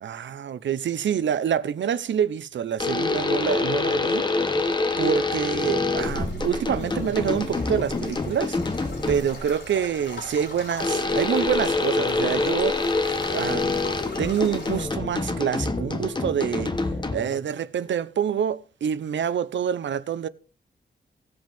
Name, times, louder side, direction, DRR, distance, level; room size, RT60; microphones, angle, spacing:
voice 1, 0.0-4.7 5.0-8.6 9.1-13.0 13.3-13.7 14.2-16.7 17.1-20.3, right 8 dB, 85° right, 0.7 m, -27 dB
sound 1, 2.8-9.4 10.8-17.4, left 3 dB, 25° left, 1.1 m, -26 dB
sound 2, 6.0-14.9, left 1 dB, 60° left, 4.8 m, -39 dB
17.0 x 7.8 x 3.5 m
wide cardioid pair, 135°, 19 cm